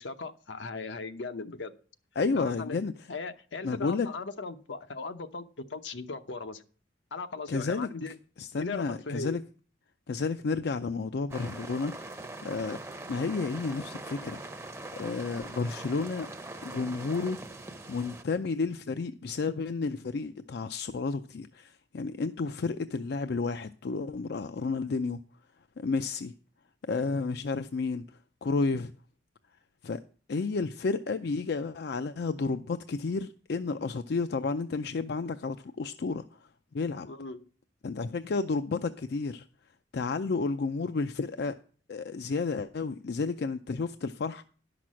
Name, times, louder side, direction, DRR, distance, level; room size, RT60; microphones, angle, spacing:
voice 1, 0.0-1.7 2.3-2.8 3.1-6.6 7.1-8.1 8.5-9.4 37.0-37.5, left 4 dB, 80° left, 0.8 m, -38 dB
voice 2, 2.2-2.9 3.6-4.1 7.5-7.9 8.4-9.4 10.1-12.8 13.1-14.7 15.0-16.3 16.6-17.4 17.9-25.2 25.8-26.3 26.9-28.1 28.4-28.9 29.8-30.0 30.3-36.3 36.7-37.1 37.8-39.4 39.9-41.6 41.9-44.4, left 4 dB, 60° left, 0.4 m, -31 dB
sound 1, 11.3-18.2, right 2 dB, 15° right, 0.7 m, -42 dB
11.0 x 6.0 x 6.2 m
head